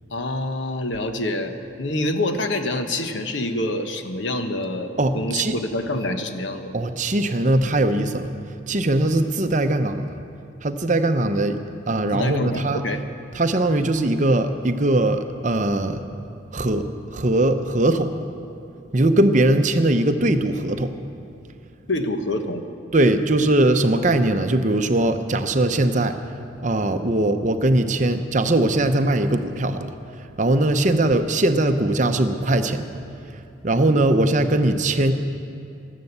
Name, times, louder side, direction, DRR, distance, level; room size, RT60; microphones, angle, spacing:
voice 1, 0.1-6.7 12.1-13.0 21.9-22.6, left 1 dB, 70° left, 7 dB, 1.0 m, -26 dB
voice 2, 5.0-5.6 6.7-8.3 8.7-10.1 10.6-11.6 11.9-12.8 13.3-16.0 16.5-18.1 18.9-20.9 22.9-26.2 26.6-29.9 30.4-32.9 33.6-35.1, right 1 dB, 40° right, 8 dB, 0.7 m, -20 dB
13.5 x 12.5 x 8.0 m, 2.6 s
head